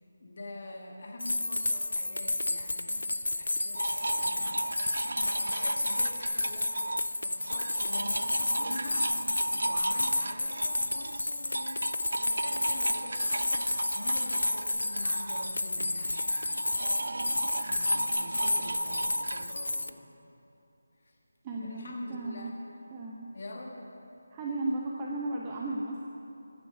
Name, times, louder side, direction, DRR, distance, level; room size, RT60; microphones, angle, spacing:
voice 1, 0.2-4.8 5.1-9.1 9.6-16.8 17.6-20.1 21.0-21.2 21.5-22.7 23.3-23.9, left 2 dB, 45° left, 0 dB, 1.6 m, -45 dB
sound 1, 1.2-19.9, left 2 dB, 70° left, 0.5 m, -31 dB
sound 2, 3.8-7.1 7.4-19.5, right 2 dB, 60° right, 0.3 m, -36 dB
voice 2, 21.4-22.5 22.9-23.3 24.3-26.1, right 2 dB, 20° right, -3 dB, 0.8 m, -35 dB
13.0 x 8.6 x 6.4 m, 2.8 s
figure-of-eight pair, 160°, 0 cm